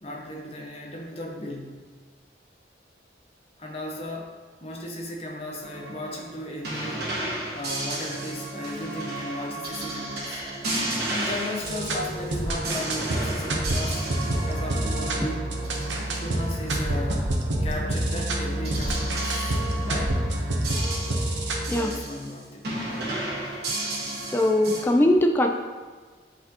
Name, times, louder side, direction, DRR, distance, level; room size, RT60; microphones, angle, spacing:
voice 1, 0.0-1.9 3.6-7.1 7.5-10.4 11.1-14.1 14.4-15.5 16.0-20.2 21.7-23.1, left 1 dB, 35° left, 0 dB, 0.8 m, -36 dB
sound 1, 5.6-16.6 17.7-22.3 22.6-24.8, right 2 dB, 60° right, 1.3 m, -33 dB
sound 2, 11.6-21.8, right 1 dB, 80° right, 0.9 m, -28 dB
voice 2, 24.3-25.5, left 1 dB, 10° left, 2 dB, 0.3 m, -20 dB
8.0 x 4.3 x 2.8 m, 1.5 s
head